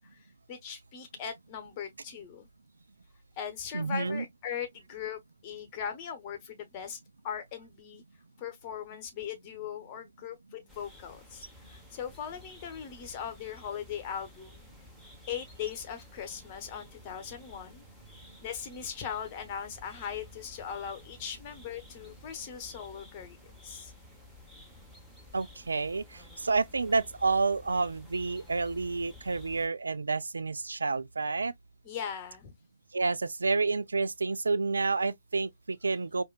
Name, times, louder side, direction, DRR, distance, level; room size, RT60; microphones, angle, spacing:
voice 1, 0.5-2.5 3.4-7.0 7.2-8.0 8.4-14.7 15.3-17.8 18.4-23.4 23.6-23.9 31.8-32.5, left 8 dB, 25° left, 1.1 m, -39 dB
voice 2, 3.7-4.3 25.3-26.0 26.4-31.5 32.9-36.2, right 4 dB, 70° right, 0.5 m, -29 dB
sound 1, 10.7-29.7, left 1 dB, ahead, 1.0 m, -53 dB
4.8 x 2.6 x 2.4 m
figure-of-eight pair, 140°, 0 cm